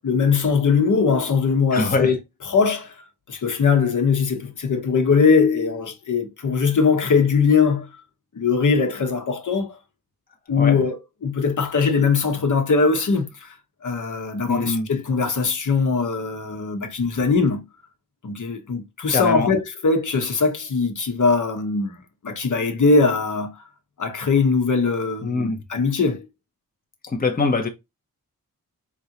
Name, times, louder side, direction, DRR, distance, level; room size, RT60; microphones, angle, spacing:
voice 1, 0.0-2.2 2.5-7.9 8.3-9.8 10.5-13.6 13.8-17.7 18.2-23.6 24.0-26.3, left 5 dB, 60° left, 1.3 m, -21 dB
voice 2, 1.7-2.1 10.6-10.8 14.5-14.9 19.1-19.5 25.2-25.6 27.1-27.7, left 3 dB, 25° left, 0.9 m, -23 dB
3.9 x 3.6 x 2.9 m
wide cardioid pair, 90°, 35 cm